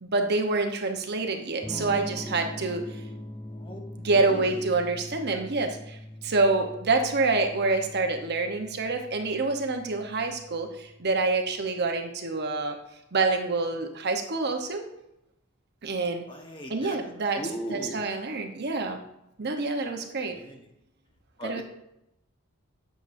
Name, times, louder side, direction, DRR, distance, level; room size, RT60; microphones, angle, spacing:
voice 1, 0.0-3.0 4.0-12.8 13.1-14.8 15.8-16.2 16.7-17.4 17.7-19.0 19.4-20.4 21.4-21.6, right 3 dB, 55° right, 4 dB, 0.9 m, -27 dB
Electric guitar / Strum, 1.6-11.4, left 1 dB, 10° left, 0.4 m, -42 dB
voice 2, 4.1-4.6 16.3-17.0 17.4-18.0 20.3-20.7 21.4-21.6, equal, 25° left, 2 dB, 1.2 m, -38 dB
10.0 x 7.1 x 2.6 m, 0.84 s
head